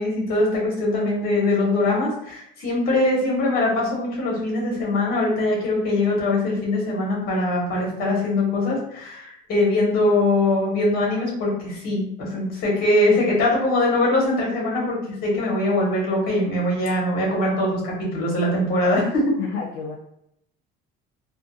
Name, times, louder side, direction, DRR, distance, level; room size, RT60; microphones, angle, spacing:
voice 1, 0.0-19.3, left 2 dB, 45° left, -3 dB, 1.1 m, -22 dB
voice 2, 19.4-20.0, left 5 dB, 80° left, -1 dB, 0.6 m, -30 dB
2.5 x 2.3 x 2.6 m, 0.75 s
cardioid pair, 165°, 21 cm